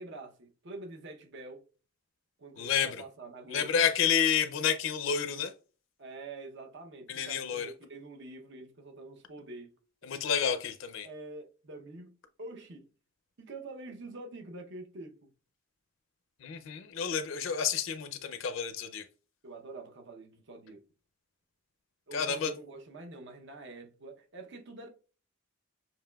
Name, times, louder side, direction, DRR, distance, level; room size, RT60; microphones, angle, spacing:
voice 1, 0.0-1.7 2.4-3.8 6.0-9.7 11.0-12.1 12.4-12.9 13.4-15.3 19.4-20.8 22.1-24.9, right 2 dB, 60° right, 0.7 m, -46 dB
voice 2, 2.6-3.0 3.5-5.5 7.1-7.7 10.0-11.1 16.4-19.0 22.1-22.5, left 7 dB, 70° left, 0.4 m, -30 dB
6.9 x 2.9 x 2.2 m
head